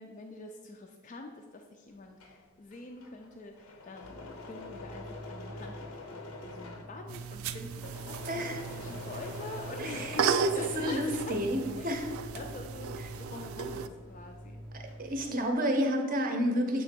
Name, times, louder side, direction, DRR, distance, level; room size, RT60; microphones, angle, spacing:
voice 1, 0.0-8.5 8.8-11.4 11.8-11.9 12.3-12.9 13.2-14.6 15.0-15.1 15.7-15.8, left 2 dB, 35° left, 2 dB, 0.3 m, -45 dB
Engine / Mechanisms, 1.9-11.5 11.9-14.2 14.5-15.2, left 2 dB, 90° left, 0.7 m, -46 dB
sound 1, 4.0-15.2, equal, ahead, 0.8 m, -48 dB
sound 2, 7.1-13.9, right 6 dB, 75° right, 0.3 m, -35 dB
voice 2, 8.3-8.6 9.8-11.6 11.8-12.1 14.7-16.8, equal, 40° right, 4 dB, 0.6 m, -30 dB
7.4 x 2.9 x 4.4 m, 1.5 s
head